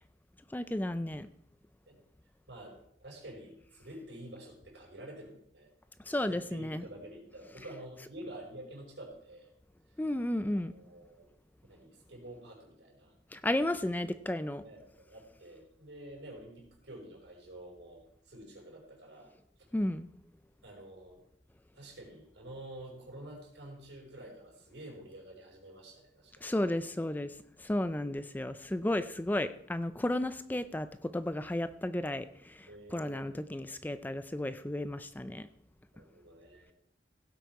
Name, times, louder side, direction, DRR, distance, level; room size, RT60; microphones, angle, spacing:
voice 1, 0.5-1.3 6.1-6.8 10.0-10.7 13.3-14.6 19.7-20.1 26.4-35.5, left 1 dB, 10° left, 12 dB, 0.4 m, -33 dB
voice 2, 2.5-5.7 6.2-9.5 10.5-11.3 11.7-13.1 14.6-19.3 20.6-21.2 21.7-27.0 28.0-28.1 32.7-33.4 35.9-36.7, right 1 dB, 80° right, -1 dB, 5.2 m, -49 dB
16.5 x 8.0 x 4.7 m, 0.72 s
head